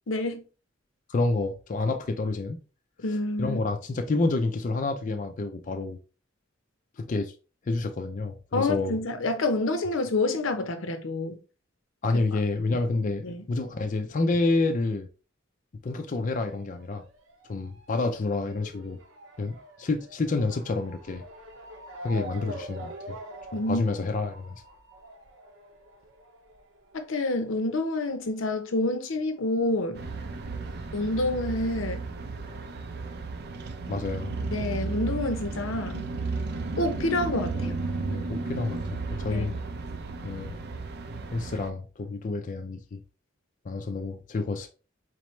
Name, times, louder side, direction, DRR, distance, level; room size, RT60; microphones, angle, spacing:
voice 1, 0.1-0.4 3.0-3.6 8.5-11.4 13.2-13.4 23.5-23.8 26.9-30.0 30.9-32.0 34.5-36.1 36.8-37.8 39.3-39.5, left 2 dB, 80° left, 0.7 m, -28 dB
voice 2, 1.1-2.6 3.4-6.0 7.0-7.3 7.7-9.0 12.0-15.1 15.8-17.0 17.5-19.0 19.4-21.2 22.0-23.2 23.5-24.6 33.9-34.5 38.1-39.5 40.2-40.6 41.3-43.0 43.6-44.7, left 3 dB, 40° left, 0.4 m, -29 dB
Motor vehicle (road) / Siren, 16.5-29.5 29.7-30.9 31.6-31.7 31.9-32.0, right 1 dB, 80° right, 0.9 m, -46 dB
sound 1, 30.0-41.7, right 3 dB, 55° right, 0.5 m, -34 dB
4.2 x 3.0 x 3.1 m
head